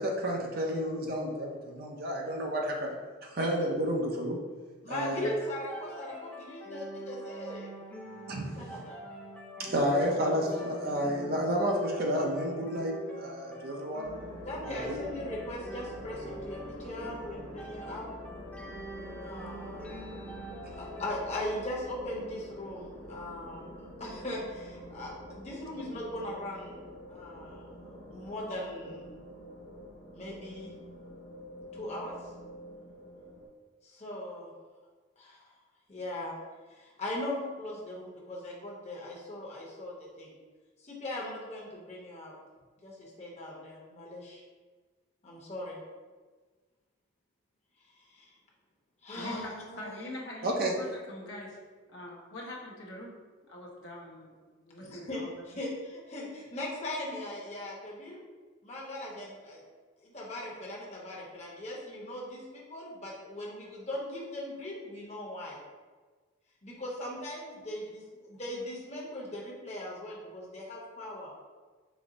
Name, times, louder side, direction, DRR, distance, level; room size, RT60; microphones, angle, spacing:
voice 1, 0.0-2.9 3.2-4.4 4.9-5.2 8.3-8.9 9.6-14.1 14.7-15.0 50.4-50.7, equal, 45° right, 0 dB, 0.5 m, -31 dB
voice 2, 4.8-7.7 8.6-9.0 10.0-10.6 14.4-18.0 19.2-20.1 20.8-26.8 27.1-29.1 30.1-30.7 31.7-32.1 33.8-34.5 35.2-35.5 35.9-36.3 36.7-40.4 40.8-42.3 42.8-44.4 45.2-45.8 47.8-48.3 49.0-50.0 54.8-55.2 55.5-58.2 58.6-59.6 60.0-65.6 66.6-71.3, left 1 dB, 30° left, -4 dB, 0.8 m, -39 dB
sound 1, 5.3-21.1, right 1 dB, 5° left, 0.4 m, -45 dB
sound 2, 14.0-33.5, equal, 85° left, 1.1 m, -46 dB
voice 3, 49.8-51.6 51.9-53.1 53.5-55.3, left 1 dB, 60° left, -3 dB, 0.9 m, -43 dB
5.1 x 2.0 x 3.8 m, 1.4 s
head